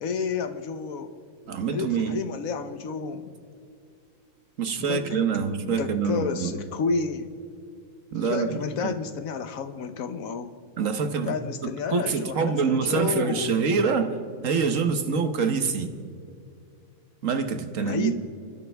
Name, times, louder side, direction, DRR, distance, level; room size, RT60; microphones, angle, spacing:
voice 1, 0.0-1.1 1.7-3.4 4.8-5.2 5.7-7.3 8.2-10.5 11.2-13.6 17.8-18.2, left 5 dB, 90° left, 10 dB, 1.4 m, -31 dB
voice 2, 1.5-2.2 4.6-6.6 8.1-8.9 10.8-11.3 11.6-14.1 14.4-15.9 17.2-18.2, right 5 dB, 70° right, 8 dB, 1.5 m, -25 dB
29.5 x 12.0 x 3.5 m, 2.4 s
omnidirectional pair, 1.4 m